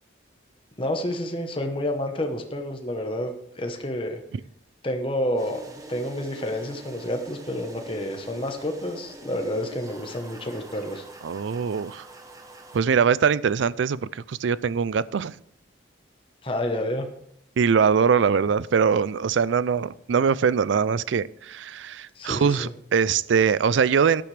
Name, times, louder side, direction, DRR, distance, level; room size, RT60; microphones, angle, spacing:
voice 1, 0.8-4.2 4.8-11.0 16.4-17.1 22.1-22.7, left 1 dB, 25° left, 4 dB, 1.0 m, -29 dB
sound 1, 5.4-12.8, right 2 dB, 15° right, 1.0 m, -44 dB
voice 2, 11.2-12.1 12.7-15.4 17.6-24.2, right 6 dB, 70° right, 19 dB, 0.4 m, -22 dB
14.0 x 10.5 x 3.3 m, 0.71 s
head